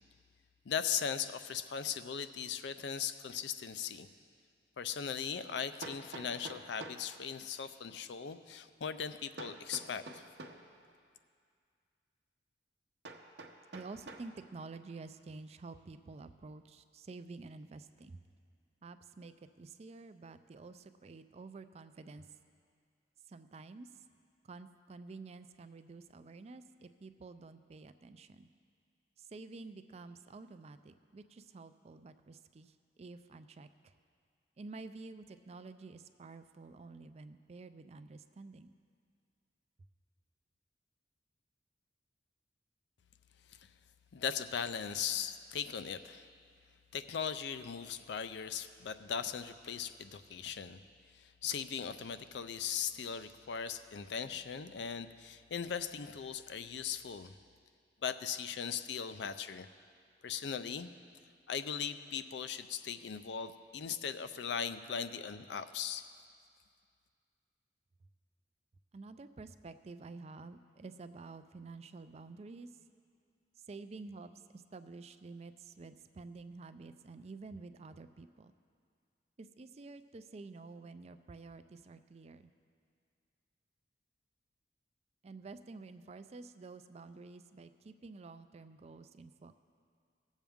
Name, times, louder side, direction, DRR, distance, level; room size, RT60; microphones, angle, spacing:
voice 1, 0.7-4.1 4.8-10.2 43.5-43.7 44.1-46.3 46.9-50.8 51.1-57.3 58.0-59.7 60.2-60.9 61.5-66.0, left 7 dB, 70° left, 12 dB, 0.4 m, -39 dB
Hammer, 4.2-4.3 5.8-7.1 9.4-10.7 13.0-14.3, right 2 dB, 70° right, 0.8 m, -48 dB
voice 2, 13.7-18.2 18.8-22.3 23.3-23.9 24.4-28.5 29.2-33.9 34.6-38.7 68.9-72.7 73.6-78.5 79.4-82.5 85.2-89.6, right 3 dB, 35° right, 11 dB, 0.4 m, -50 dB
18.5 x 7.3 x 3.5 m, 2.2 s
head